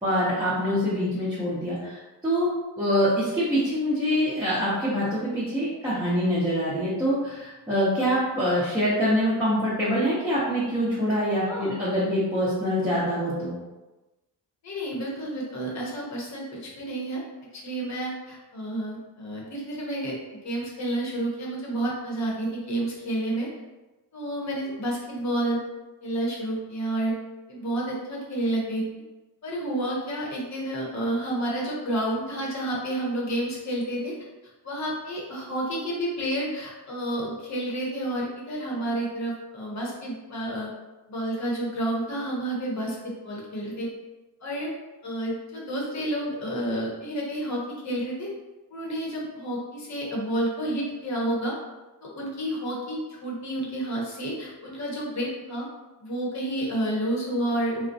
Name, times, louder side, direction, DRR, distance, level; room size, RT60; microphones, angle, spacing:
voice 1, 0.0-2.5 2.8-13.6, equal, 10° right, -10 dB, 0.5 m, -25 dB
voice 2, 11.5-11.8 14.6-17.2 17.5-23.5 24.1-25.6 26.0-27.1 27.5-28.8 29.4-34.1 34.6-40.7 41.1-43.9 44.4-44.7 45.0-48.3 48.7-51.5 52.0-55.6 56.0-57.9, right 1 dB, 40° left, -3 dB, 0.8 m, -30 dB
3.5 x 2.1 x 2.6 m, 1.1 s
wide cardioid pair, 170°, 42 cm